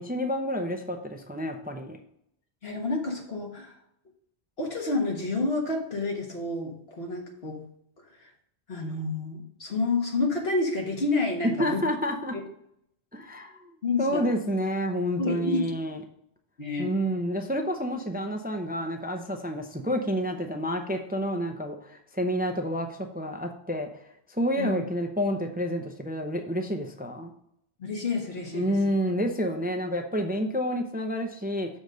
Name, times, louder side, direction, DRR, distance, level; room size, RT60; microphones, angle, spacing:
voice 1, 0.0-2.0 11.6-12.4 13.1-13.7 14.0-16.0 16.8-23.9 24.3-27.3 28.5-31.7, equal, 10° right, 4 dB, 0.5 m, -29 dB
voice 2, 2.6-3.7 4.6-7.6 8.2-8.3 8.7-11.8 13.8-14.2 15.2-15.7 16.6-16.9 24.6-24.8 27.8-28.8, left 3 dB, 65° left, 0 dB, 1.6 m, -29 dB
7.0 x 4.0 x 6.3 m, 0.73 s
omnidirectional pair, 1.1 m